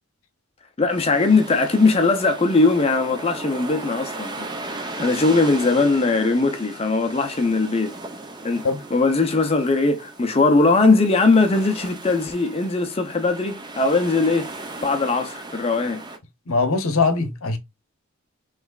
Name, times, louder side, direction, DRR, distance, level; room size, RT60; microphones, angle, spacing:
voice 1, 0.8-8.0 8.4-8.6 8.9-14.5 14.8-16.0, left 3 dB, 25° left, 0.5 m, -20 dB
sound 1, 0.9-16.2, right 2 dB, 20° right, 0.6 m, -37 dB
voice 2, 16.5-17.6, left 3 dB, 70° left, 0.8 m, -21 dB
5.8 x 3.1 x 2.3 m
head